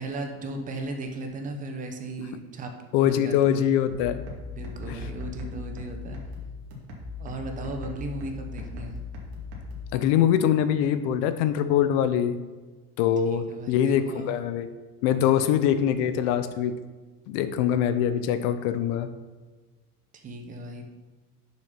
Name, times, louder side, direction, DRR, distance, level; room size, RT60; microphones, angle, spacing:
voice 1, 0.0-2.7 3.0-3.6 4.5-6.2 7.2-9.0 13.2-14.3 15.2-15.7 20.1-20.8, right 2 dB, 25° right, 4 dB, 0.9 m, -36 dB
voice 2, 2.9-4.2 4.9-5.0 9.9-12.4 13.0-14.7 15.0-16.8 17.3-19.1, left 9 dB, 65° left, 11 dB, 0.7 m, -23 dB
sound 1, 3.9-9.9, left 4 dB, 75° right, 2.3 m, -38 dB
7.1 x 6.4 x 5.8 m, 1.3 s
cardioid pair, 175°, 32 cm